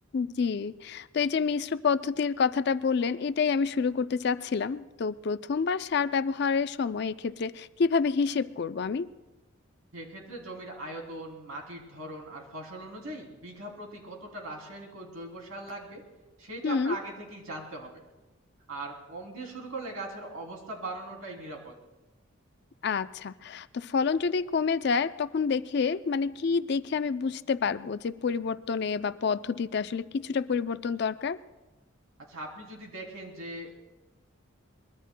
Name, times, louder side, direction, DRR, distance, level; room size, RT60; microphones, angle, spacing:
voice 1, 0.1-9.1 16.6-17.0 22.8-31.4, left 5 dB, 55° left, 14 dB, 0.4 m, -28 dB
voice 2, 9.9-16.0 16.4-18.0 18.7-21.7 32.3-33.8, right 2 dB, 90° right, 0 dB, 2.9 m, -40 dB
23.0 x 21.0 x 2.2 m, 1.1 s
head